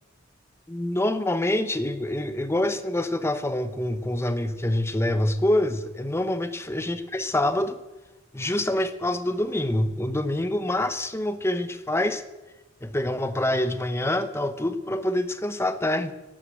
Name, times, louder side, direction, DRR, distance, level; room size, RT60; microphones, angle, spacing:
voice 1, 0.7-7.8 8.3-12.2 12.8-16.1, left 1 dB, 15° left, 11 dB, 0.9 m, -26 dB
13.0 x 11.5 x 7.7 m, 1.1 s
head